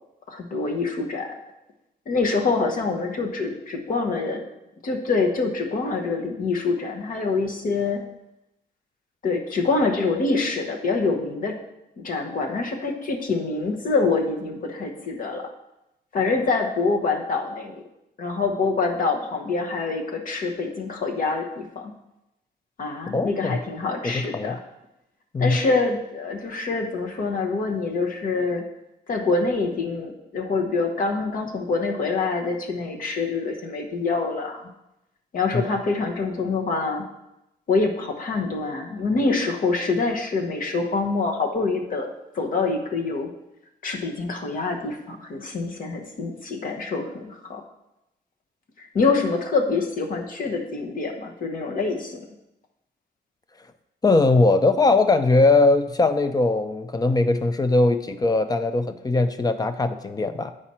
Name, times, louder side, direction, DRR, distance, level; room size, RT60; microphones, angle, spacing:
voice 1, 0.3-1.3 2.1-4.5 4.8-8.0 9.2-11.5 12.0-15.5 16.1-17.8 18.2-21.9 22.8-24.6 25.4-28.6 29.1-34.7 35.3-37.1 37.7-42.1 42.3-43.3 43.8-47.6 48.8-52.2, left 3 dB, 50° left, 3 dB, 1.0 m, -25 dB
voice 2, 23.1-23.6 24.0-24.6 25.3-25.6 35.5-35.6 54.0-60.5, left 3 dB, 20° left, 10 dB, 0.4 m, -20 dB
8.9 x 5.0 x 4.2 m, 0.88 s
wide cardioid pair, 165°, 18 cm